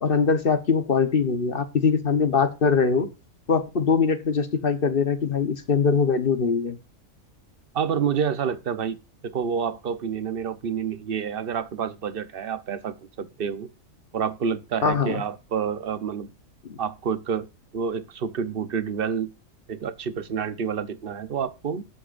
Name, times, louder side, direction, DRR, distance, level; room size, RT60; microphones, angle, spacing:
voice 1, 0.0-3.1 3.5-6.8 14.8-15.2 16.7-16.8, left 5 dB, 45° left, 1.2 m, -22 dB
voice 2, 7.7-9.0 9.2-13.7 14.1-16.3 16.8-17.5 17.7-19.3 19.7-21.8, right 7 dB, 45° right, 1.0 m, -28 dB
17.5 x 8.4 x 2.5 m
omnidirectional pair, 1.4 m